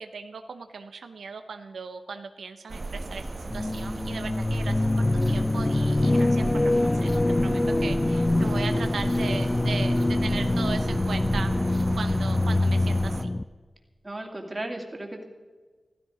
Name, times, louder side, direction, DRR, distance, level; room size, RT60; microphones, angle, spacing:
voice 1, 0.0-11.5 12.0-13.2, right 5 dB, 85° right, 8 dB, 0.7 m, -38 dB
sound 1, 2.7-13.2, right 2 dB, 40° right, 0.9 m, -35 dB
sound 2, 3.5-13.4, left 2 dB, 25° left, 0.3 m, -24 dB
voice 2, 14.0-15.2, right 1 dB, 25° right, 2 dB, 2.2 m, -35 dB
15.0 x 14.0 x 5.1 m, 1.4 s
wide cardioid pair, 75°, 0 cm